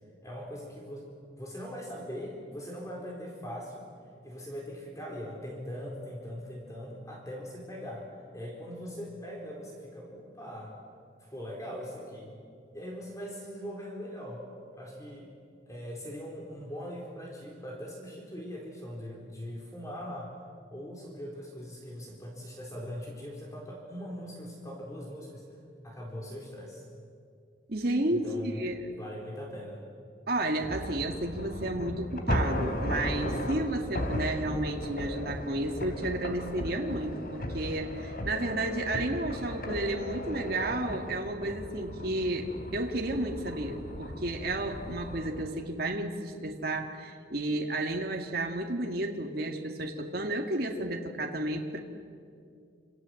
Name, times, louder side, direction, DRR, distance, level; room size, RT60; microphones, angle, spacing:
voice 1, 0.2-1.1 1.4-3.9 4.2-10.7 11.2-12.3 12.7-14.4 14.7-15.3 15.7-20.3 20.7-25.4 25.8-26.8 28.1-28.6 28.9-29.8, equal, 20° left, -1 dB, 4.3 m, -41 dB
voice 2, 27.7-28.9 30.3-51.8, right 1 dB, 55° right, 2 dB, 2.3 m, -32 dB
sound 1, 30.6-45.4, left 1 dB, 50° left, 3.3 m, -36 dB
27.5 x 27.0 x 7.9 m, 2.2 s
head